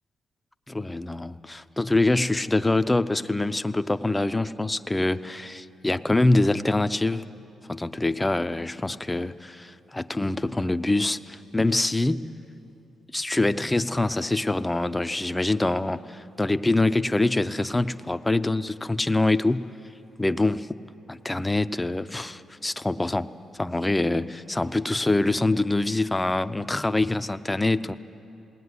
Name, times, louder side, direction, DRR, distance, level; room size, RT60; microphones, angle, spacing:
voice 1, 0.7-7.2 7.7-12.2 13.1-19.6 20.2-20.8 21.1-23.3 23.5-27.9, left 2 dB, 10° left, 11 dB, 0.4 m, -25 dB
20.5 x 18.0 x 9.6 m, 2.8 s
wide cardioid pair, 155°, 0 cm